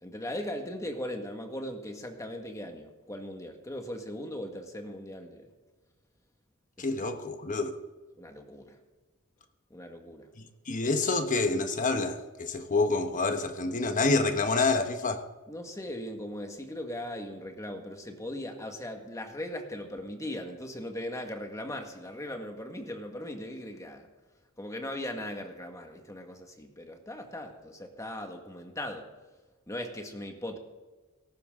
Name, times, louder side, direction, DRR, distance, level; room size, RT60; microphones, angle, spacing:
voice 1, 0.0-5.5 6.8-7.2 8.2-8.7 9.7-10.3 15.5-24.1 24.6-29.1 29.7-30.6, left 1 dB, 15° left, 1.7 m, -39 dB
voice 2, 6.8-7.7 10.4-15.2, left 3 dB, 40° left, 1.2 m, -28 dB
17.5 x 14.5 x 3.8 m
head